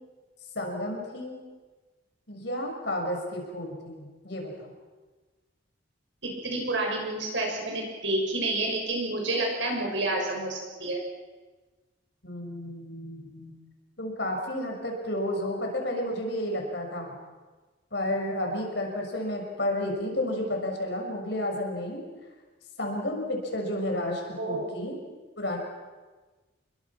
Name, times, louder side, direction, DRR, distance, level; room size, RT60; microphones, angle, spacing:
voice 1, 0.5-1.4 2.3-4.7 12.2-13.5 14.0-17.2 17.9-22.0 22.8-25.0 25.4-25.6, left 1 dB, 65° left, 1 dB, 6.2 m, -31 dB
voice 2, 6.2-11.0 24.4-24.7, right 2 dB, 70° right, 0 dB, 7.0 m, -29 dB
29.0 x 22.5 x 6.1 m, 1.3 s
head